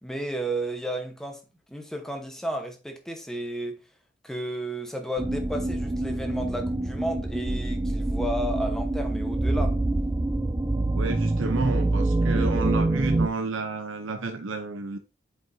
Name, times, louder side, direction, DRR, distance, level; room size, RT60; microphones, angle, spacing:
voice 1, 0.0-1.4 1.7-3.8 4.2-9.8, right 1 dB, 5° left, 1.0 m, -33 dB
sound 1, 5.2-13.3, right 2 dB, 15° right, 0.3 m, -26 dB
voice 2, 10.9-15.0, right 3 dB, 80° right, 0.7 m, -30 dB
7.5 x 5.3 x 2.7 m
head